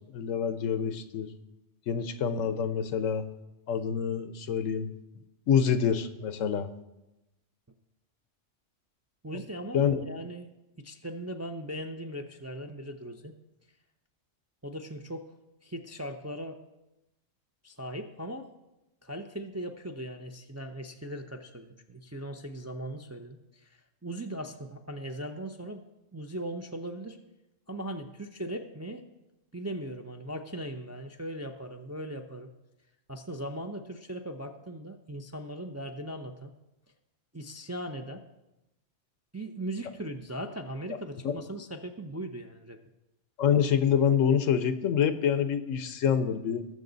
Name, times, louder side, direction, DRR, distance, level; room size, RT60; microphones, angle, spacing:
voice 1, 0.1-1.3 1.9-3.2 3.7-4.9 5.5-6.7 9.7-10.0 41.2-41.3 43.4-46.7, left 8 dB, 85° left, 12 dB, 1.1 m, -26 dB
voice 2, 9.2-13.3 14.6-15.3 15.6-16.6 17.6-18.5 19.0-25.9 26.1-27.2 27.7-29.0 29.5-32.5 33.1-36.5 37.3-38.2 39.3-42.8, right 1 dB, 20° right, 4 dB, 0.4 m, -39 dB
20.0 x 6.8 x 4.0 m, 0.95 s
omnidirectional pair, 1.3 m